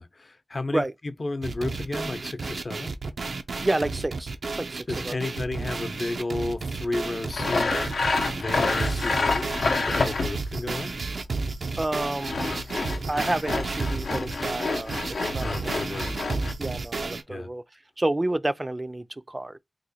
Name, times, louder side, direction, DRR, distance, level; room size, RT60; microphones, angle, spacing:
voice 1, 0.0-2.9 4.9-7.9 8.4-9.5 9.9-10.9 15.4-16.1 17.3-17.5, left 2 dB, 50° left, 0.6 m, -32 dB
sound 1, 1.4-17.2, right 3 dB, 85° right, 0.5 m, -32 dB
voice 2, 3.6-5.2 11.8-12.6 13.1-15.6 15.9-16.2 16.6-17.6 18.0-19.6, right 1 dB, 30° right, 0.4 m, -30 dB
Sawing, 7.3-10.5 12.0-16.5, left 3 dB, 90° left, 0.6 m, -28 dB
3.0 x 2.2 x 4.0 m
wide cardioid pair, 55°, 0 cm